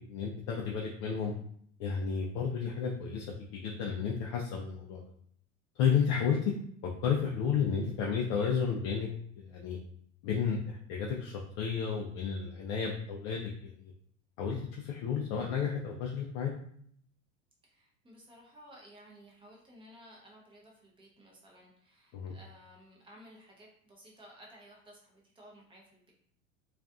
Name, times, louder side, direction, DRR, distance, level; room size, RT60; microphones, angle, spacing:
voice 1, 0.0-1.3 1.8-3.3 3.5-5.0 5.8-6.4 7.0-9.1 9.4-9.8 10.2-13.9 14.4-16.5 22.1-22.3, left 6 dB, 45° left, -1 dB, 0.4 m, -32 dB
voice 2, 17.6-26.1, equal, 15° right, -2 dB, 0.6 m, -56 dB
2.5 x 2.4 x 2.3 m, 0.64 s
hypercardioid pair, 100°, 40 cm